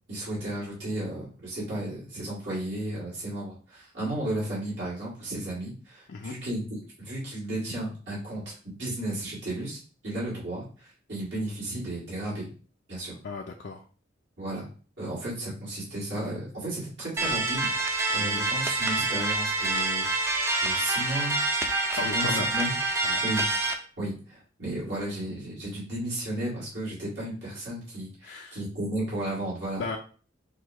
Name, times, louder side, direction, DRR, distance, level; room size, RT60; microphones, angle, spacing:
voice 1, 0.1-8.5 8.8-9.8 10.0-12.5 12.9-13.2 14.4-14.7 15.0-20.1 20.6-21.4 21.9-22.7 23.2-23.4 24.0-29.8, right 1 dB, 65° right, -8 dB, 2.2 m, -34 dB
voice 2, 13.2-13.8 18.2-18.5 22.0-22.5 23.0-23.2 28.2-28.6 29.8-30.0, left 4 dB, 60° left, 1 dB, 0.4 m, -35 dB
sound 1, 17.2-23.7, right 2 dB, 15° right, 0.5 m, -27 dB
6.2 x 2.2 x 2.9 m, 0.39 s
head